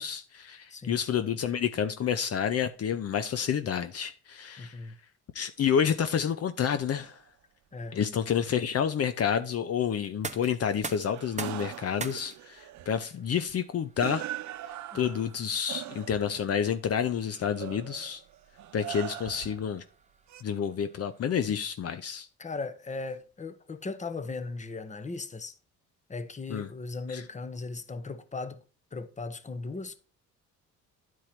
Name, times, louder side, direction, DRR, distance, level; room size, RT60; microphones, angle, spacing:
voice 1, 0.0-4.9 5.3-7.2 7.9-14.3 14.9-18.2 18.7-19.8 20.4-22.3 26.5-26.7 27.1-27.2, left 8 dB, 55° left, 0.7 m, -29 dB
voice 2, 4.6-5.0 7.7-8.0 14.9-15.1 22.4-25.5 26.1-28.6 28.9-30.0, left 3 dB, 25° left, 1.0 m, -37 dB
sound 1, 6.9-7.1 11.1-13.1 14.0-16.4 17.3-19.8 20.3-20.4, right 12 dB, 70° right, 0.7 m, -41 dB
sound 2, 10.0-21.8, right 5 dB, 25° right, 0.9 m, -46 dB
10.5 x 4.6 x 4.4 m
cardioid pair, 90°, 30 cm